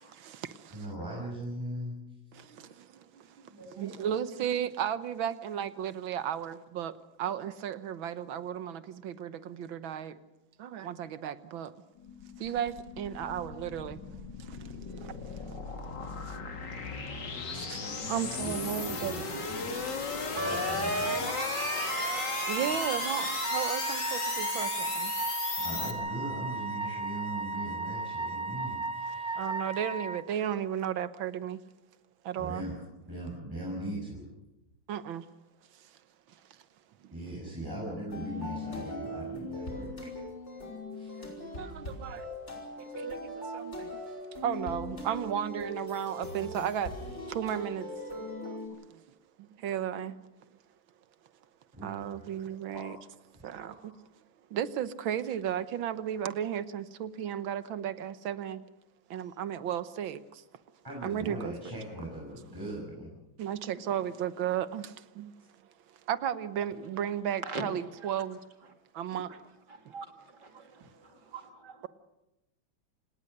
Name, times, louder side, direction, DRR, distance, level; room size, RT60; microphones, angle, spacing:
voice 1, 0.0-0.8 2.3-10.2 10.6-11.7 12.4-14.0 14.4-15.2 16.0-16.4 17.5-19.2 22.5-25.1 29.4-31.6 32.2-32.7 34.9-35.3 37.0-37.1 41.4-42.3 42.8-43.9 44.4-46.9 47.3-47.9 48.4-48.6 48.9-49.0 49.4-50.2 51.8-52.9 53.4-53.9 54.5-58.6 59.1-60.4 61.0-61.5 63.4-65.3 66.1-68.4 68.9-69.3 70.2-70.6, right 9 dB, 85° right, 1.8 m, -34 dB
voice 2, 0.7-2.2 3.5-4.0 17.9-18.0 18.4-19.7 20.4-21.3 25.6-29.4 32.3-32.8 33.1-34.3 37.1-40.1 40.9-41.3 51.7-52.4 52.7-52.9 53.3-53.4 53.7-53.9 60.8-63.2 71.1-71.2, right 1 dB, 10° right, 5.8 m, -40 dB
sound 1, 12.0-25.9, left 4 dB, 60° left, 2.8 m, -36 dB
Wind instrument woodwind instrument, 20.4-30.2, right 3 dB, 35° right, 0.8 m, -34 dB
sound 2, 38.1-48.7, left 1 dB, 35° left, 5.5 m, -40 dB
voice 3, 71.3-71.9, right 4 dB, 60° right, 2.7 m, -39 dB
28.0 x 18.5 x 6.7 m
omnidirectional pair, 2.1 m